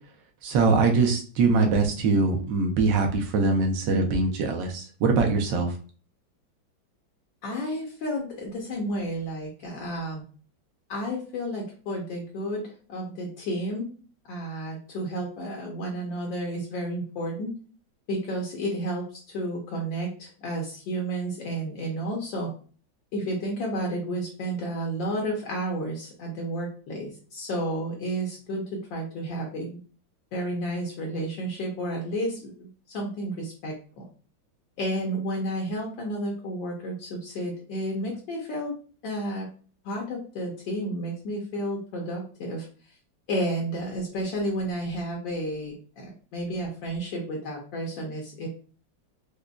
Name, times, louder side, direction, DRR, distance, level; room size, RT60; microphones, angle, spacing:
voice 1, 0.4-5.7, right 3 dB, 70° right, 3 dB, 1.3 m, -23 dB
voice 2, 7.4-10.2 10.9-13.9 14.3-17.6 18.1-22.5 23.1-28.6 28.9-29.8 30.3-34.1 34.8-38.7 39.0-39.5 39.8-42.6 43.3-48.5, right 1 dB, 70° left, 0 dB, 1.4 m, -31 dB
5.0 x 2.2 x 2.2 m, 0.40 s
omnidirectional pair, 2.2 m